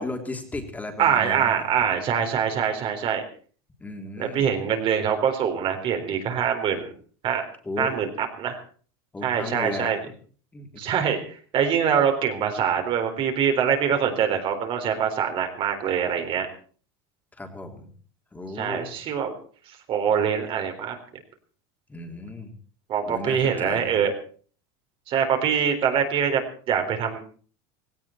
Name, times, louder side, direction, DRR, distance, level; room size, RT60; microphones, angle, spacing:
voice 1, 0.0-1.6 3.8-4.5 7.6-7.9 9.1-10.0 10.5-11.1 17.4-17.9 18.3-18.9 21.9-22.5 23.0-24.0, left 2 dB, 10° left, 4 dB, 3.5 m, -35 dB
voice 2, 1.0-3.2 4.2-6.9 7.2-7.5 7.8-8.1 8.4-8.6 9.2-10.0 10.8-16.5 18.6-19.3 19.9-21.0 22.9-24.1 25.1-27.2, right 7 dB, 45° right, 5 dB, 3.9 m, -24 dB
17.5 x 17.0 x 4.5 m, 0.44 s
supercardioid pair, 135°, 13 cm